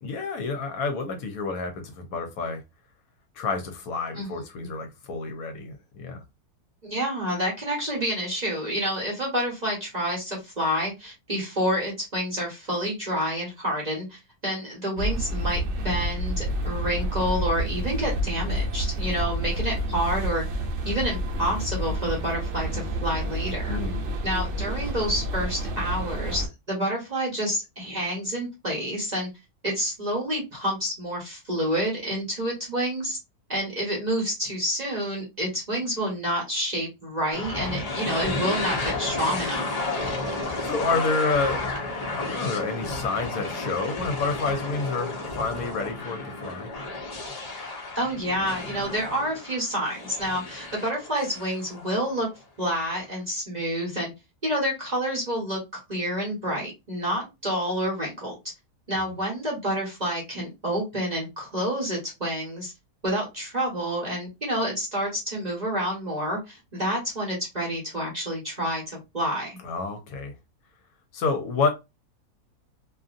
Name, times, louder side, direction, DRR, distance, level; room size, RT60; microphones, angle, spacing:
voice 1, 0.0-2.6 3.4-6.2 23.7-24.0 40.6-41.6 42.1-46.7 69.6-70.3 71.1-71.7, left 4 dB, 70° left, 1.0 m, -29 dB
voice 2, 6.8-20.4 20.8-23.8 24.2-29.3 29.6-33.2 33.5-39.7 47.9-52.3 52.6-54.1 54.4-58.4 58.9-62.7 63.0-69.6, equal, 35° right, 0.8 m, -28 dB
sound 1, 15.0-26.5, equal, 65° right, 0.8 m, -29 dB
sound 2, 37.3-52.2, left 2 dB, 45° left, 0.5 m, -32 dB
2.6 x 2.5 x 2.4 m
omnidirectional pair, 1.7 m